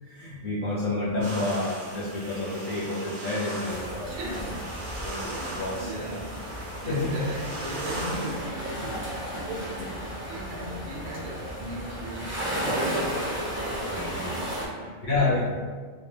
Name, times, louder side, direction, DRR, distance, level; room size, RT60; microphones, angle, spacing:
voice 1, 0.0-4.1 5.0-5.9 6.9-7.2 8.8-8.9 13.9-14.3 14.7-15.5, left 2 dB, 45° left, -9 dB, 0.8 m, -29 dB
sound 1, 1.2-8.4, right 1 dB, 45° right, 0.7 m, -38 dB
sound 2, 3.7-14.7, right 1 dB, 15° right, 0.4 m, -34 dB
voice 2, 4.1-4.8 5.2-15.5, right 1 dB, 80° right, -2 dB, 1.0 m, -39 dB
2.4 x 2.2 x 3.2 m, 1.6 s
omnidirectional pair, 1.4 m